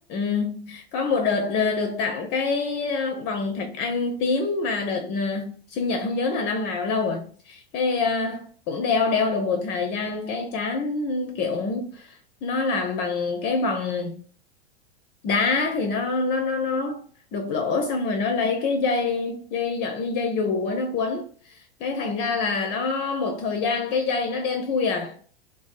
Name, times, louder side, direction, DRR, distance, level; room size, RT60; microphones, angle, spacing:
voice 1, 0.1-12.1 12.4-14.2 15.2-17.0 17.3-25.2, left 4 dB, 35° left, 0.4 m, -26 dB
2.6 x 2.4 x 2.3 m
hypercardioid pair, 115°, 31 cm